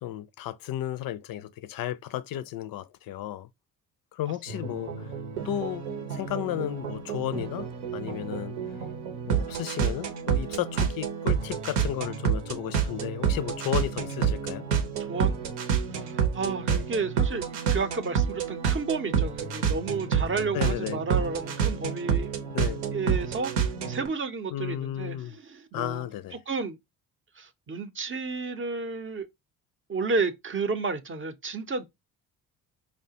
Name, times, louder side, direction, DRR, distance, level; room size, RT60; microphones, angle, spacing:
voice 1, 0.0-3.5 4.1-5.1 5.4-5.8 6.1-7.7 7.9-8.5 9.3-14.6 16.7-16.8 20.5-21.0 22.5-22.8 24.5-25.4 25.7-26.4, left 12 dB, 50° left, 0.5 m, -33 dB
sound 1, 4.5-24.1, right 7 dB, 75° right, 0.9 m, -29 dB
voice 2, 15.0-15.3 15.6-22.3 22.9-26.1 26.5-26.8 27.4-29.3 29.9-31.8, right 4 dB, 25° right, 0.7 m, -32 dB
5.0 x 2.1 x 2.7 m
hypercardioid pair, 45°, 46 cm